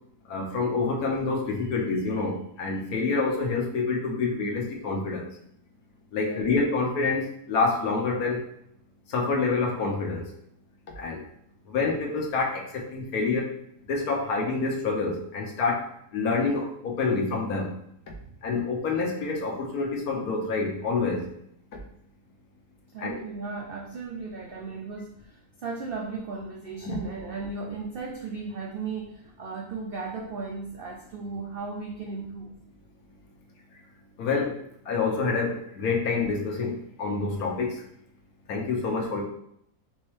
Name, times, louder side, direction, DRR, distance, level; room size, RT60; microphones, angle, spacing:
voice 1, 0.3-5.3 6.1-8.4 9.1-10.3 11.0-11.2 11.7-13.5 13.9-17.7 18.4-21.3 23.0-23.2 26.8-27.0 34.2-34.6 34.9-37.8 38.5-39.2, left 4 dB, 75° left, 0 dB, 1.3 m, -27 dB
voice 2, 6.3-6.6 18.2-18.4 22.9-32.5, right 4 dB, 75° right, 0 dB, 0.5 m, -36 dB
4.4 x 3.1 x 3.1 m, 0.71 s
omnidirectional pair, 1.6 m